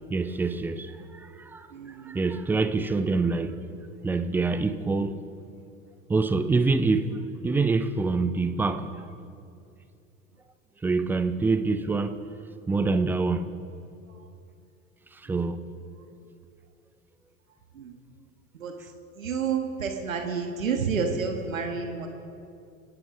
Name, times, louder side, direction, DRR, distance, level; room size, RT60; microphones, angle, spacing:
voice 1, 0.1-3.8 4.0-5.2 6.1-9.1 10.8-12.2 12.7-13.5 15.1-15.6, right 3 dB, 5° right, 0.4 m, -26 dB
voice 2, 1.7-2.3 14.1-14.3 15.3-15.5 17.7-18.0 18.5-22.1, right 5 dB, 70° right, 1.6 m, -30 dB
28.5 x 11.5 x 3.6 m
figure-of-eight pair, 80°, 41 cm